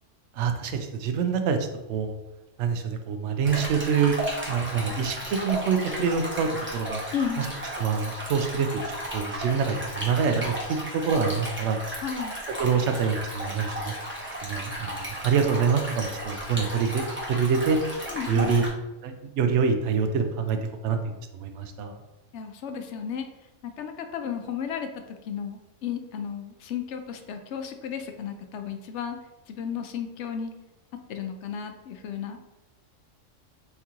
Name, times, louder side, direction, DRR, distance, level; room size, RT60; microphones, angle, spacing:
voice 1, 0.3-2.1 2.6-4.2 4.5-7.0 7.4-7.5 7.8-8.7 9.1-11.8 12.6-13.9 14.4-17.8 18.3-18.7 19.0-22.0, right 6 dB, 70° right, 6 dB, 0.9 m, -26 dB
Stream, 3.4-18.7, equal, 10° right, 0.9 m, -34 dB
voice 2, 7.1-7.5 12.0-12.4 18.1-18.6 22.3-23.3 23.6-24.9 25.2-29.2 29.5-30.5 31.1-32.4, left 7 dB, 70° left, 6 dB, 0.8 m, -33 dB
4.5 x 2.9 x 3.6 m, 1.0 s
omnidirectional pair, 1.3 m